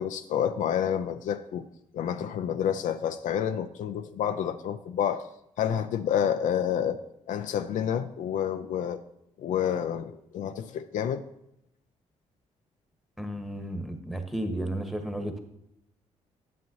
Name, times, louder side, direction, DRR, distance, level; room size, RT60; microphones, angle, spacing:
voice 1, 0.0-1.6 1.9-5.2 5.6-7.0 7.3-9.0 9.4-11.2, left 9 dB, 75° left, 8 dB, 0.4 m, -29 dB
voice 2, 13.2-15.4, right 1 dB, ahead, 6 dB, 1.2 m, -33 dB
9.5 x 7.0 x 2.7 m, 0.80 s
supercardioid pair, 65°, 13 cm